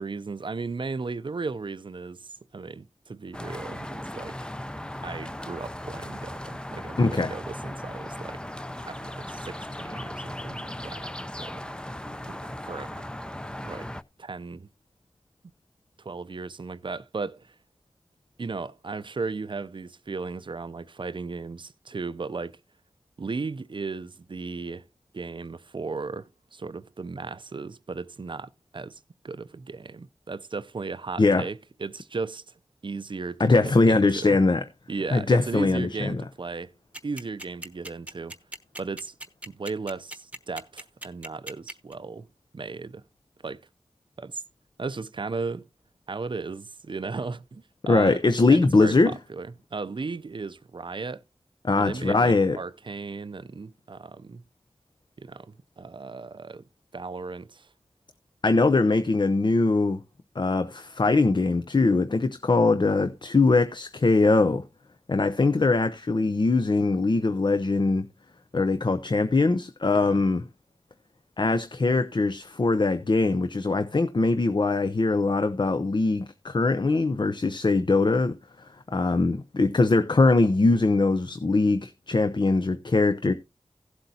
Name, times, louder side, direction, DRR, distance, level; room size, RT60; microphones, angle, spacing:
voice 1, 0.0-4.4 5.0-8.4 8.8-11.1 11.4-11.7 12.1-13.0 13.6-13.9 14.2-14.7 16.0-17.6 18.4-22.6 23.2-24.9 25.1-29.0 29.2-32.5 32.8-34.4 34.9-36.7 37.0-38.4 38.8-39.1 39.5-42.3 42.5-43.0 43.4-43.6 44.2-44.4 44.8-45.7 46.1-48.2 48.5-51.2 51.8-54.4 55.2-56.7 56.9-57.7 69.9-70.2, right 4 dB, 55° right, 0.5 m, -36 dB
sound 1, 3.3-14.0, left 1 dB, 10° left, 0.5 m, -37 dB
voice 2, 7.0-7.3 31.2-31.4 33.4-34.6 35.1-36.2 47.9-49.1 51.6-52.6 58.4-60.0 60.4-64.6 65.1-68.1 68.5-70.4 71.4-83.3, left 3 dB, 50° left, 0.6 m, -22 dB
sound 2, 36.9-41.9, right 1 dB, 15° right, 1.0 m, -38 dB
16.0 x 7.8 x 2.8 m
wide cardioid pair, 55°, 10 cm